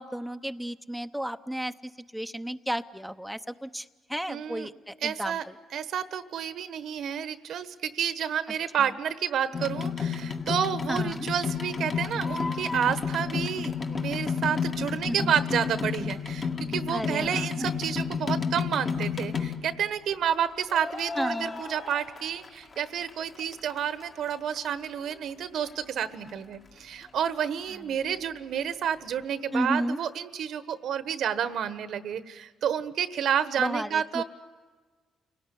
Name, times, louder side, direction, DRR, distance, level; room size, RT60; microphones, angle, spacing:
voice 1, 0.0-1.7 2.1-5.4 8.8-8.9 10.9-11.3 15.1-15.3 16.9-17.7 21.2-21.6 29.5-30.0 33.6-34.2, right 1 dB, ahead, 7 dB, 0.8 m, -32 dB
voice 2, 4.3-4.7 5.0-5.4 5.7-34.2, right 8 dB, 70° right, 12 dB, 1.2 m, -30 dB
sound 1, 9.5-19.9 20.7-22.8 23.1-24.0 24.6-24.7 24.8-24.9 25.1-25.2 25.7-25.8 26.0-26.1, left 6 dB, 35° left, 1.9 m, -31 dB
29.0 x 18.5 x 9.8 m, 1.4 s
cardioid pair, 90°, 0 cm